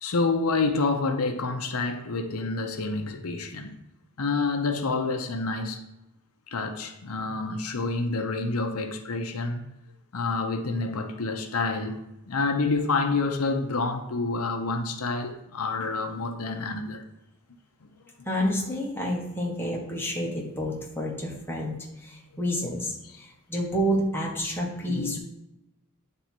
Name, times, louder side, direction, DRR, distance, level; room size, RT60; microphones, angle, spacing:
voice 1, 0.0-3.7 4.2-5.8 6.5-9.6 10.1-17.0 23.0-23.1 24.9-25.2, left 3 dB, 85° left, 5 dB, 0.7 m, -28 dB
voice 2, 18.2-21.8 22.0-25.2, equal, 10° left, -3 dB, 1.2 m, -29 dB
9.3 x 3.5 x 4.4 m, 0.91 s
head